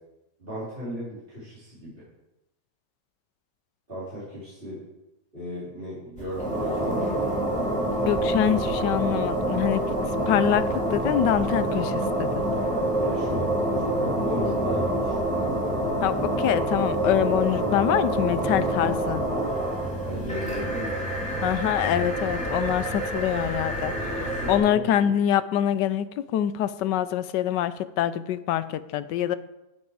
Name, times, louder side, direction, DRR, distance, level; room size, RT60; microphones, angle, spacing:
voice 1, 0.4-2.0 3.9-4.8 5.3-7.1 12.7-15.1 20.0-21.5 24.1-25.1, equal, 30° right, -11 dB, 4.4 m, -35 dB
sound 1, 6.2-24.6, right 1 dB, 5° left, 2.9 m, -27 dB
voice 2, 8.1-9.8 10.3-12.4 16.0-19.2 21.4-23.9 24.5-29.4, left 10 dB, 80° left, 14 dB, 1.3 m, -25 dB
13.0 x 7.4 x 4.8 m, 0.94 s
omnidirectional pair, 1.9 m